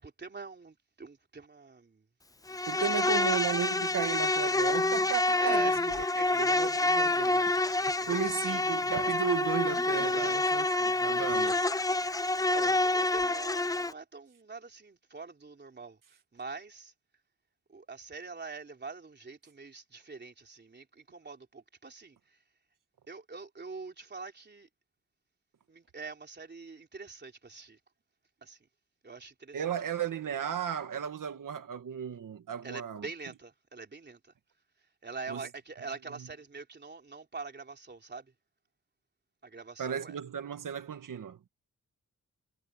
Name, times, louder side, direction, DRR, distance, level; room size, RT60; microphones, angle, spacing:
voice 1, 0.0-2.1 2.5-3.2 5.4-6.3 6.6-6.9 7.6-8.2 8.5-8.6 9.9-10.4 11.0-11.6 12.5-16.0 16.3-16.9 17.7-22.2 23.1-24.7 25.7-27.8 28.4-28.6 29.0-29.6 32.6-34.3 35.0-38.3 39.4-40.2, right 4 dB, 35° right, 3.5 m, -44 dB
Insect, 2.5-13.9, left 2 dB, 10° left, 0.5 m, -28 dB
voice 2, 2.7-11.7 29.5-33.1 35.3-35.5 36.1-36.3 39.8-41.4, right 8 dB, 85° right, 1.9 m, -35 dB
wide cardioid pair, 155°, 31 cm